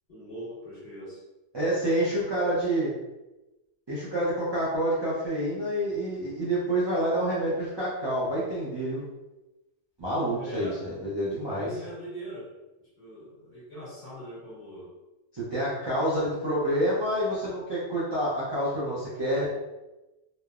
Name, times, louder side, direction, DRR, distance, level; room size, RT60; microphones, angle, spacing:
voice 1, 0.1-1.2 10.4-10.8 11.6-12.5 12.8-14.9, equal, 35° left, -10 dB, 1.4 m, -41 dB
voice 2, 1.5-2.9 3.9-9.0 10.0-11.7 15.3-19.5, right 1 dB, 35° right, -9 dB, 0.4 m, -28 dB
3.0 x 2.0 x 2.3 m, 1.0 s
omnidirectional pair, 1.2 m